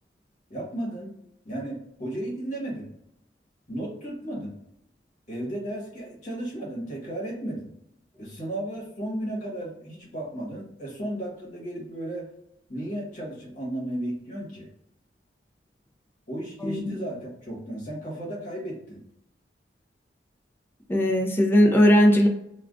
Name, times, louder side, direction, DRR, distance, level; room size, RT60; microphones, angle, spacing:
voice 1, 0.5-1.2 1.4-2.9 3.7-4.6 5.3-7.7 8.2-12.3 12.7-14.7 16.3-19.0, right 1 dB, 45° left, -3 dB, 1.1 m, -34 dB
voice 2, 20.9-22.3, equal, 15° left, 1 dB, 0.4 m, -18 dB
2.4 x 2.3 x 3.5 m, 0.76 s
head